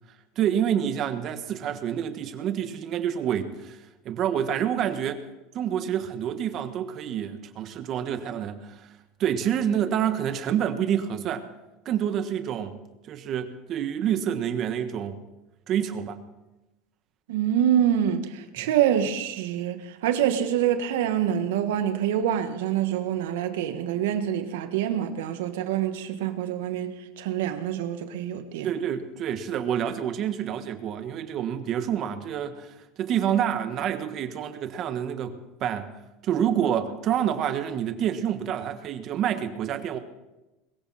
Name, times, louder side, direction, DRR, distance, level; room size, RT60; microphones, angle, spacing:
voice 1, 0.3-3.8 4.0-5.2 5.5-8.9 9.2-11.5 11.8-12.8 13.1-15.2 15.7-16.2 18.6-18.7 28.6-35.9 36.2-40.0, right 9 dB, 45° right, 1.5 m, -28 dB
voice 2, 17.3-28.7, right 10 dB, 85° right, 1.5 m, -26 dB
21.5 x 15.0 x 4.3 m
supercardioid pair, 125°, 0 cm